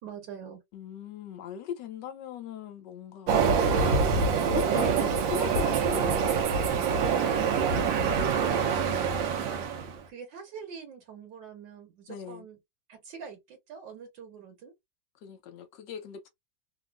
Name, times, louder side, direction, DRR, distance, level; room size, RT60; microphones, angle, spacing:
voice 1, 0.0-0.6 7.1-9.7 10.1-12.6 12.9-14.7, right 6 dB, 70° right, 1.6 m, -44 dB
voice 2, 0.7-3.4 4.3-6.4 12.1-12.5 15.2-16.3, left 9 dB, 75° left, 1.2 m, -39 dB
Train, 3.3-10.0, right 5 dB, 90° right, 1.4 m, -25 dB
3.4 x 2.3 x 2.3 m
omnidirectional pair, 2.1 m